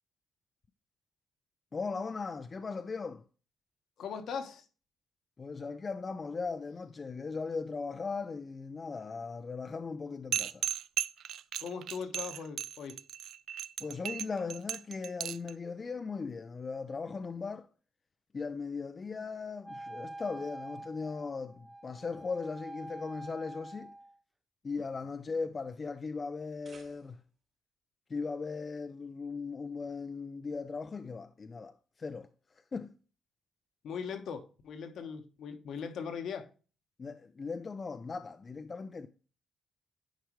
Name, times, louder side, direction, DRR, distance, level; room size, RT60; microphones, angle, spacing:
voice 1, 1.7-3.2 5.4-10.7 13.8-17.7 18.3-23.9 24.6-27.2 28.1-32.3 32.5-32.9 37.0-39.1, left 4 dB, 35° left, 0.5 m, -38 dB
voice 2, 4.0-4.7 11.6-13.0 33.8-36.5, left 6 dB, 70° left, 1.1 m, -39 dB
sound 1, 10.3-15.5, right 10 dB, 75° right, 0.3 m, -35 dB
Wind instrument woodwind instrument, 19.6-24.2, right 1 dB, 5° right, 1.2 m, -46 dB
sound 2, 26.3-27.5, right 4 dB, 50° right, 1.7 m, -59 dB
10.5 x 4.7 x 3.1 m
cardioid pair, 90°, 0 cm